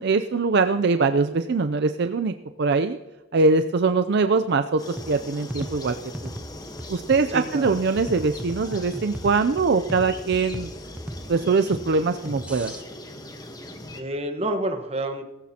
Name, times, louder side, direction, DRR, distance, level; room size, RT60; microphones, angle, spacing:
voice 1, 0.0-3.0 3.3-6.0 6.9-10.7 11.3-12.7, right 4 dB, 55° right, 8 dB, 0.5 m, -22 dB
sound 1, 4.8-14.0, left 1 dB, 20° left, 1.2 m, -40 dB
sound 2, 5.0-12.8, equal, 5° right, 0.6 m, -37 dB
voice 2, 7.3-7.8 13.9-15.2, right 1 dB, 30° right, 5 dB, 1.3 m, -28 dB
17.5 x 15.5 x 2.9 m, 1.1 s
head